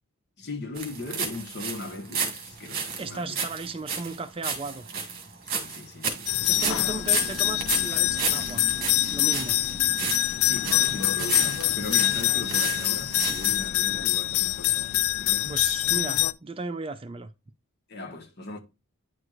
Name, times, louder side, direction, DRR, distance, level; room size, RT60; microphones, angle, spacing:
voice 1, 0.4-3.4 5.4-6.3 6.5-6.9 10.3-15.6 17.9-18.6, left 2 dB, 50° left, 1.4 m, -38 dB
sound 1, 0.8-13.7, right 5 dB, 45° right, 1.8 m, -33 dB
voice 2, 3.0-4.9 6.4-9.6 15.2-17.3, right 3 dB, 25° right, 0.4 m, -36 dB
sound 2, 6.3-16.3, left 16 dB, 75° left, 0.4 m, -25 dB
sound 3, 6.5-14.1, right 1 dB, 15° left, 0.7 m, -43 dB
9.7 x 4.7 x 2.4 m
head